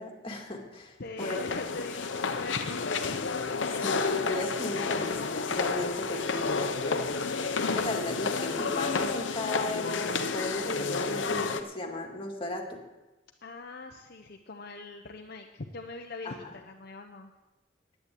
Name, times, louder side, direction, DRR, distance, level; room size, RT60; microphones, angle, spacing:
voice 1, 0.0-1.4 3.7-12.8 16.2-16.5, left 1 dB, 30° left, 1 dB, 2.1 m, -36 dB
voice 2, 1.0-3.2 13.4-17.3, left 3 dB, 55° left, 3 dB, 0.8 m, -41 dB
sound 1, 1.2-11.6, left 4 dB, 85° left, 0.9 m, -30 dB
11.0 x 9.2 x 8.3 m, 1.1 s
head